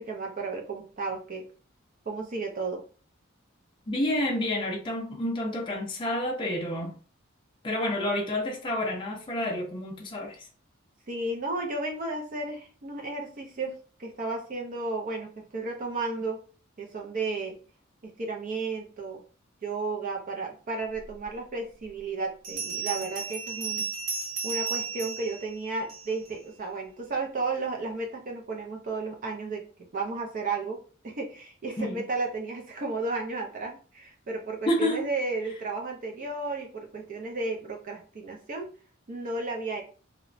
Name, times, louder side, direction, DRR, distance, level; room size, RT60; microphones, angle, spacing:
voice 1, 0.0-1.5 2.1-2.8 11.1-16.4 16.8-17.6 18.0-19.2 19.6-23.9 24.4-29.6 29.9-30.8 31.0-38.7 39.1-39.8, right 3 dB, 45° right, 0.4 m, -33 dB
voice 2, 3.9-6.9 7.6-10.5 31.8-32.0 34.7-35.0, left 1 dB, 25° left, 0.4 m, -29 dB
Bell, 22.4-26.3, right 6 dB, 75° right, 1.0 m, -34 dB
2.8 x 2.1 x 2.5 m
head